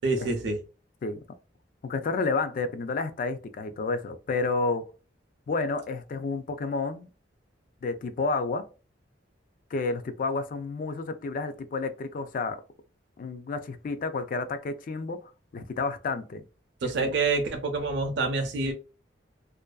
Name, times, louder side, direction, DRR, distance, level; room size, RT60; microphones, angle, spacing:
voice 1, 0.0-0.6 16.8-18.7, right 3 dB, 65° right, 0.4 m, -27 dB
voice 2, 1.8-4.8 5.5-7.1 7.8-8.6 9.7-12.6 13.2-16.4 16.8-17.1, left 3 dB, 45° left, 0.3 m, -30 dB
2.4 x 2.2 x 2.2 m
head